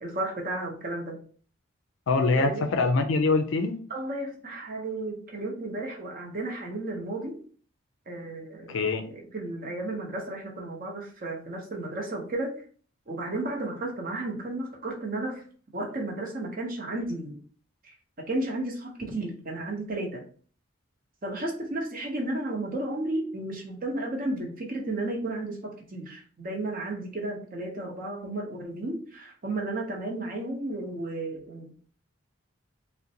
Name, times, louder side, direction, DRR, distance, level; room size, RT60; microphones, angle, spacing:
voice 1, 0.0-1.2 2.4-2.7 3.9-7.4 8.1-12.6 13.1-15.4 15.7-17.4 17.8-20.2 21.2-31.9, right 2 dB, 45° right, 0.8 m, -33 dB
voice 2, 2.1-3.8 8.7-9.0, left 3 dB, 70° left, 0.4 m, -24 dB
3.7 x 2.1 x 2.8 m
head